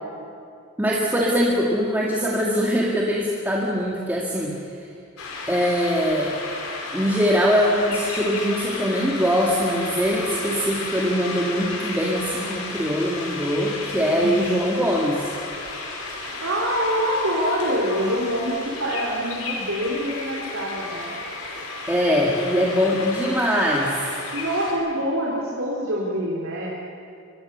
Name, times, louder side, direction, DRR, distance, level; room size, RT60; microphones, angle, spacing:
voice 1, 0.8-4.9 5.5-6.4 6.9-15.3 21.9-24.0, equal, 10° right, -3 dB, 2.1 m, -22 dB
sound 1, 5.2-24.7, left 3 dB, 85° left, 4.5 m, -33 dB
voice 2, 14.2-14.5 16.2-21.1 24.3-26.7, equal, 65° right, -4 dB, 3.5 m, -25 dB
24.0 x 22.5 x 6.8 m, 2.4 s
head